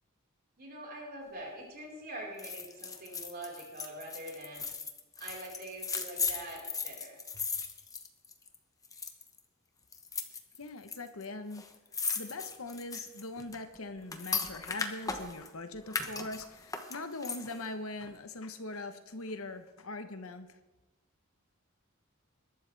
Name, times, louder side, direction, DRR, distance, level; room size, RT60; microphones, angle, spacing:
voice 1, 0.6-4.7 5.2-7.2, right 1 dB, 50° right, -3 dB, 4.9 m, -44 dB
sound 1, 2.4-8.6 8.8-9.4 9.9-11.0 11.2-11.3 11.5-15.5 15.9-17.7 18.0-18.1, left 5 dB, 15° left, 1.1 m, -37 dB
voice 2, 10.6-11.7 12.1-20.6, left 2 dB, 80° left, 9 dB, 1.2 m, -41 dB
21.5 x 12.0 x 3.5 m, 1.1 s
head